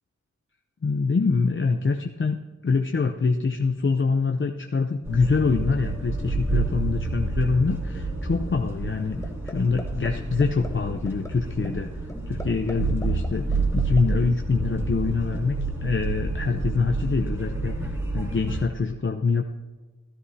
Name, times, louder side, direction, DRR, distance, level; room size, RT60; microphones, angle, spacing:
voice 1, 0.8-2.4 2.6-9.2 9.4-11.9 12.3-19.4, left 4 dB, 40° left, 4 dB, 0.7 m, -25 dB
sound 1, 5.0-18.6, right 3 dB, 10° right, 2.3 m, -29 dB
sound 2, 9.2-9.5 9.8-10.1 10.4-10.7 11.1-11.3 11.6-11.7 12.1-12.7 13.0-14.0, left 2 dB, 10° left, 1.0 m, -37 dB
13.5 x 13.0 x 2.8 m, 1.3 s
wide cardioid pair, 65°, 30 cm